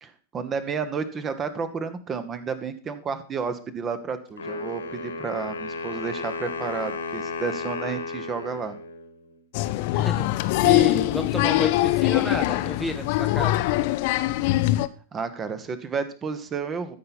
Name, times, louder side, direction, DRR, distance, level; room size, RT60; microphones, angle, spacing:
voice 1, 0.0-8.7 15.1-17.0, right 5 dB, 25° right, 11 dB, 1.1 m, -31 dB
Wind instrument woodwind instrument, 4.4-9.4, left 4 dB, 75° left, 1.6 m, -34 dB
Applause, 9.5-14.9, left 16 dB, 50° left, 0.5 m, -22 dB
voice 2, 9.9-13.7, equal, ahead, 7 dB, 0.7 m, -31 dB
13.5 x 5.6 x 4.2 m, 0.42 s
figure-of-eight pair, 90°, 0 cm